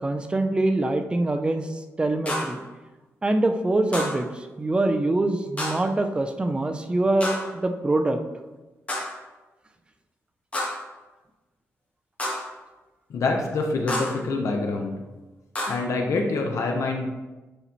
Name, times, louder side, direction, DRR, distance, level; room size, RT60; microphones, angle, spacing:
voice 1, 0.0-1.7 2.0-2.6 3.2-8.2, right 2 dB, 20° right, 6 dB, 0.5 m, -24 dB
sound 1, 2.3-2.6 3.9-4.3 5.6-5.9 7.2-7.6 8.9-9.2 10.5-10.9 12.2-12.6 13.9-14.3 15.5-15.8, left 1 dB, 25° left, 1.5 m, -30 dB
voice 2, 13.1-15.0 15.7-17.0, left 3 dB, 75° left, 2 dB, 0.9 m, -26 dB
9.8 x 4.1 x 3.0 m, 1.1 s
wide cardioid pair, 155°, 5 cm